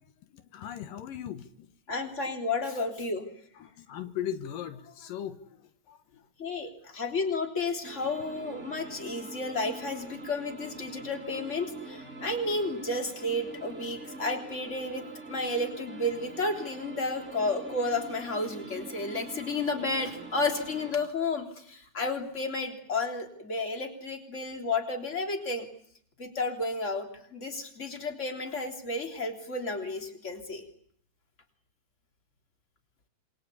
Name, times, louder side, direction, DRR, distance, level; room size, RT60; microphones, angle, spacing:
voice 1, 0.3-1.5 3.6-5.6 5.9-6.0, left 10 dB, 85° left, 9 dB, 3.0 m, -38 dB
voice 2, 1.9-3.3 6.4-25.7 26.2-30.6, left 2 dB, 20° left, 4 dB, 3.5 m, -32 dB
sound 1, 7.8-20.9, right 2 dB, 20° right, 3.0 m, -44 dB
27.0 x 22.5 x 8.5 m, 0.66 s
omnidirectional pair, 3.8 m